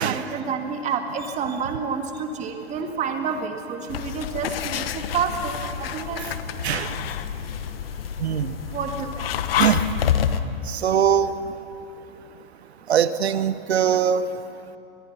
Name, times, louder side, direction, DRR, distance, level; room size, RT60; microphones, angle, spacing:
voice 1, 0.0-6.2 8.7-9.3, right 5 dB, 20° right, 5 dB, 1.9 m, -29 dB
sound 1, 3.9-10.4, left 9 dB, 65° left, 1.1 m, -28 dB
voice 2, 6.6-6.9 8.2-8.5 9.6-9.9 10.7-11.3 12.9-14.3, right 8 dB, 80° right, 13 dB, 1.1 m, -21 dB
25.0 x 18.0 x 6.0 m, 2.9 s
hypercardioid pair, 140°, 32 cm